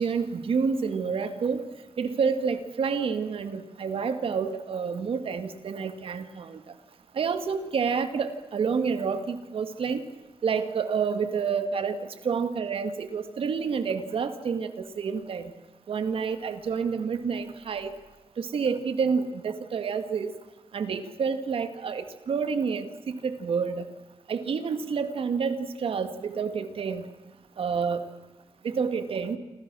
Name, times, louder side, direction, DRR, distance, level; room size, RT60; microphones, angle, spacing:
voice 1, 0.0-1.7 2.0-6.6 7.1-10.0 10.4-11.9 12.2-15.5 15.9-17.9 18.4-20.3 20.7-23.9 24.3-27.0 27.6-28.0 28.6-29.4, right 5 dB, 80° right, 9 dB, 2.0 m, -28 dB
28.0 x 26.5 x 6.3 m, 1.1 s
wide cardioid pair, 120°, 9 cm